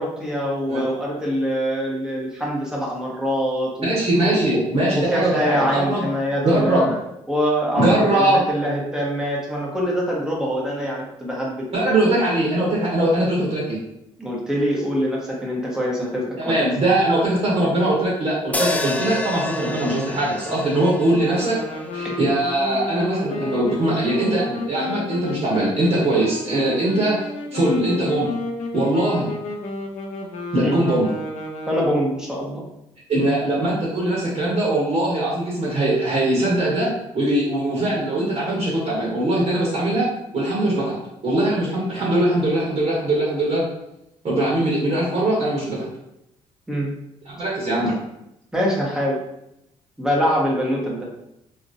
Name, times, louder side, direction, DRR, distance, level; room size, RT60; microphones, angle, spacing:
voice 1, 0.0-3.9 4.2-4.6 5.1-6.9 7.3-11.7 14.2-16.6 22.0-22.1 30.6-30.8 31.7-32.7 46.7-46.9 48.5-49.2 50.0-51.1, equal, 5° right, -3 dB, 1.0 m, -24 dB
voice 2, 3.8-6.1 6.4-6.9 7.7-8.4 11.7-13.8 16.4-21.6 21.9-27.2 27.5-28.3 28.7-29.3 30.5-31.1 33.1-41.0 41.2-43.6 44.2-45.9 47.2-47.9, right 1 dB, 50° right, -5 dB, 1.2 m, -21 dB
sound 1, 18.5-22.8, left 2 dB, 10° left, 0.3 m, -29 dB
sound 2, 21.1-32.1, left 2 dB, 65° left, 0.6 m, -32 dB
2.9 x 2.5 x 2.7 m, 0.82 s
supercardioid pair, 70°, 13 cm